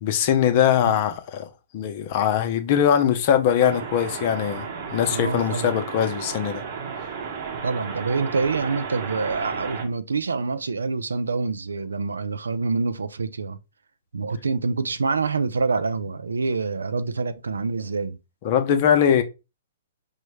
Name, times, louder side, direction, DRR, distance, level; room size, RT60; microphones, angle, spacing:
voice 1, 0.0-1.5 1.7-6.6 18.4-19.2, left 9 dB, 45° left, 0.6 m, -21 dB
sound 1, 3.6-9.9, right 6 dB, 50° right, 0.8 m, -33 dB
voice 2, 5.1-5.7 7.6-13.6 14.1-18.2, right 4 dB, 85° right, 0.4 m, -26 dB
4.8 x 2.1 x 3.1 m
hypercardioid pair, 130°, 0 cm